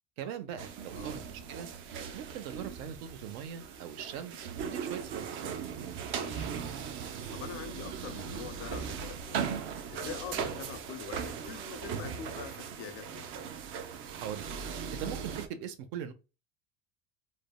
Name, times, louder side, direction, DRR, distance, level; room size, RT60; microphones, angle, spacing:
voice 1, 0.2-1.7 2.1-5.5 14.2-14.5 14.9-16.1, right 9 dB, 80° right, 0.7 m, -41 dB
sound 1, 0.6-15.5, right 7 dB, 40° right, 0.4 m, -38 dB
voice 2, 6.1-6.5 7.1-13.3, left 7 dB, 90° left, 0.7 m, -44 dB
3.3 x 2.1 x 2.2 m
cardioid pair, 150°, 31 cm